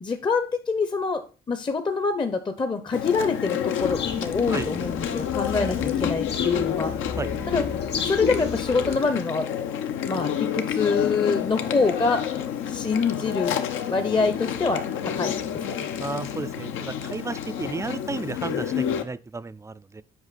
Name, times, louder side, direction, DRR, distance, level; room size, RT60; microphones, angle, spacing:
voice 1, 0.0-6.9 7.5-7.6 8.0-9.5 10.0-12.2 12.7-13.6 13.9-15.4 15.7-15.9, left 4 dB, 25° left, 0.6 m, -25 dB
Chewing mastication, 2.9-19.0, left 8 dB, 85° left, 0.8 m, -29 dB
sound 1, 3.8-9.0, left 5 dB, 60° left, 1.2 m, -35 dB
voice 2, 16.0-20.0, right 3 dB, 15° right, 0.3 m, -33 dB
8.0 x 4.9 x 4.1 m
cardioid pair, 90°, 20 cm